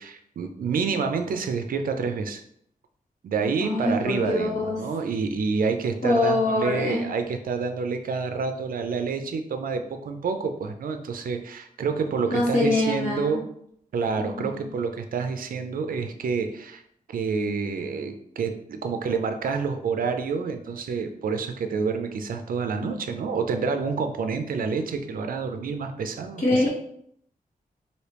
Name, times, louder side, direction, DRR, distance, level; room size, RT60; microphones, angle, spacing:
voice 1, 0.0-2.4 3.2-13.4 13.9-16.8 17.1-26.7, right 5 dB, 70° right, 7 dB, 0.4 m, -28 dB
voice 2, 3.6-4.8 6.0-7.1 12.3-13.4 14.2-14.7 26.4-26.7, left 2 dB, 55° left, -5 dB, 1.4 m, -24 dB
3.3 x 2.7 x 3.0 m, 0.70 s
wide cardioid pair, 125°, 15 cm